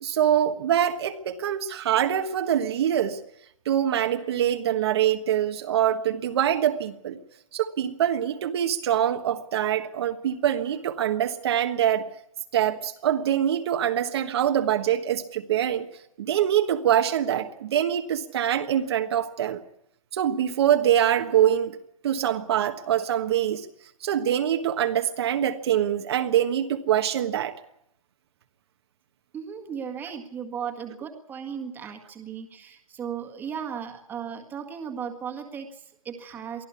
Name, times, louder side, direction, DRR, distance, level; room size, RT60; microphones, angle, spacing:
voice 1, 0.0-3.2 3.6-7.2 7.5-12.1 12.5-15.8 16.2-19.6 20.1-21.8 22.0-23.6 24.0-27.5, right 10 dB, 45° right, 5 dB, 1.4 m, -24 dB
voice 2, 29.3-36.6, right 7 dB, 10° right, 3 dB, 1.8 m, -36 dB
24.0 x 14.5 x 8.3 m, 0.76 s
hypercardioid pair, 160°, 18 cm